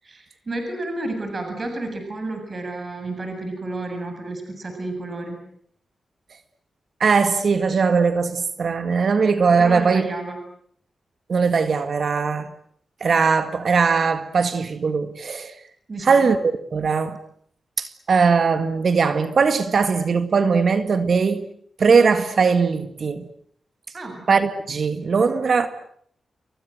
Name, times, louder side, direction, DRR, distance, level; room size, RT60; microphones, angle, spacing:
voice 1, 0.0-5.4 9.6-10.4 15.9-16.3 23.9-24.3, right 2 dB, 45° right, 7.5 m, -31 dB
voice 2, 7.0-10.0 11.3-12.5 13.0-15.5 16.0-17.2 17.8-21.5 21.8-23.3 24.3-25.7, right 5 dB, 65° right, 2.0 m, -20 dB
29.0 x 24.5 x 7.8 m
cardioid pair, 60°, 0 cm